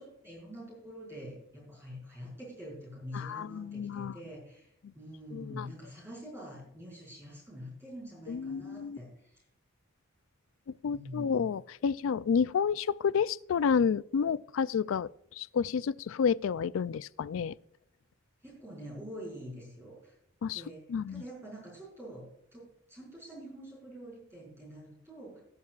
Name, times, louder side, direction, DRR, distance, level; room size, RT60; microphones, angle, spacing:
voice 1, 0.0-9.4 10.8-11.5 18.4-20.2 20.5-20.8 21.1-25.4, equal, 10° right, 5.2 m, -46 dB
voice 2, 3.1-4.2 5.3-5.7 8.3-9.0 10.8-17.6 20.4-20.6 20.9-21.2, left 6 dB, 65° left, 0.3 m, -30 dB
18.0 x 9.5 x 2.4 m
head